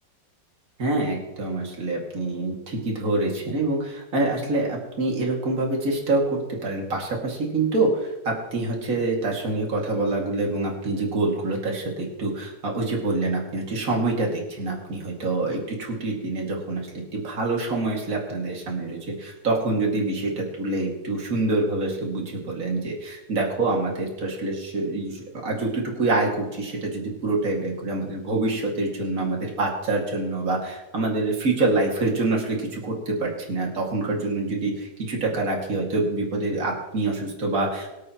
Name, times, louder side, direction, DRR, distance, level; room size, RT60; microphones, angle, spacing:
voice 1, 0.8-37.9, right 2 dB, 45° right, -2 dB, 2.9 m, -26 dB
23.0 x 8.3 x 3.1 m, 1.0 s
omnidirectional pair, 2.1 m